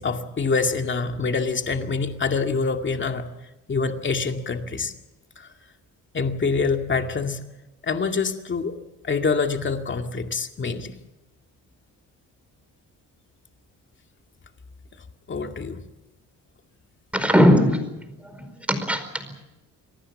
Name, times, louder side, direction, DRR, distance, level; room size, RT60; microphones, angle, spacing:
voice 1, 0.0-3.3 3.7-4.9 5.4-5.5 6.1-7.5 7.8-8.8 9.0-10.9 15.3-15.8, left 4 dB, 35° left, 5 dB, 2.2 m, -25 dB
voice 2, 17.1-17.9 18.2-19.4, equal, 5° right, 8 dB, 4.8 m, -20 dB
26.5 x 19.0 x 7.3 m, 0.99 s
cardioid pair, 105°, 34 cm